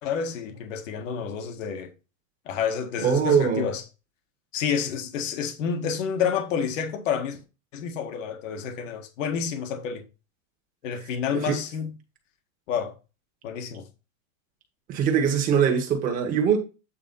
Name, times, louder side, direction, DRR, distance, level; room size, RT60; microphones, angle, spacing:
voice 1, 0.0-1.9 2.4-3.8 4.5-7.4 7.7-10.0 10.8-11.9 12.7-12.9 13.4-13.8, left 7 dB, 65° left, 1.6 m, -29 dB
voice 2, 3.0-3.7 11.3-11.6 14.9-16.6, right 7 dB, 20° right, 1.5 m, -22 dB
8.7 x 4.2 x 4.2 m
supercardioid pair, 175°, 41 cm